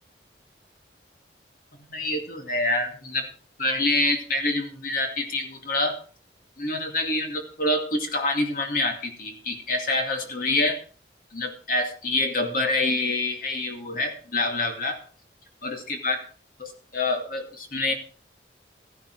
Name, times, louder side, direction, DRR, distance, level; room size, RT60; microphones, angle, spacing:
voice 1, 1.7-3.3 3.6-6.0 6.6-10.8 11.3-15.0 15.6-16.2 16.6-17.9, left 2 dB, 50° left, 4 dB, 2.4 m, -26 dB
14.5 x 11.0 x 4.7 m, 0.39 s
head